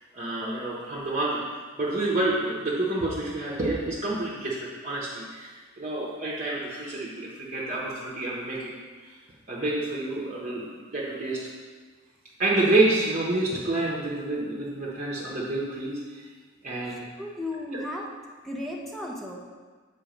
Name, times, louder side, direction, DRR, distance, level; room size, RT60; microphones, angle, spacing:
voice 1, 0.1-1.4 1.8-8.7 9.0-9.2 9.5-11.4 12.4-16.3 16.6-17.0, right 2 dB, 40° right, -6 dB, 0.8 m, -28 dB
voice 2, 16.9-18.1 18.4-19.5, left 1 dB, ahead, -2 dB, 0.5 m, -35 dB
7.5 x 3.1 x 5.0 m, 1.4 s
head